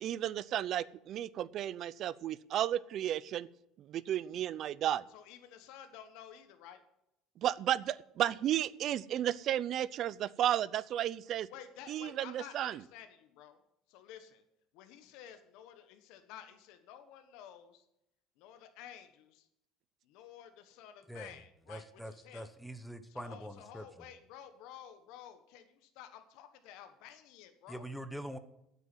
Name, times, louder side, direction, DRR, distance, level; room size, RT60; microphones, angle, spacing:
voice 1, 0.0-3.5 3.8-5.0 7.4-11.5 11.9-12.8, right 11 dB, 50° right, 19 dB, 0.5 m, -33 dB
voice 2, 5.1-6.8 11.5-13.6 13.9-14.4 14.7-17.8 18.4-19.5 20.0-22.5 23.1-27.9, left 10 dB, 75° left, 8 dB, 1.4 m, -52 dB
voice 3, 21.7-23.8 27.7-28.4, equal, ahead, 10 dB, 1.1 m, -44 dB
9.5 x 8.4 x 9.1 m, 0.83 s
cardioid pair, 115°, 0 cm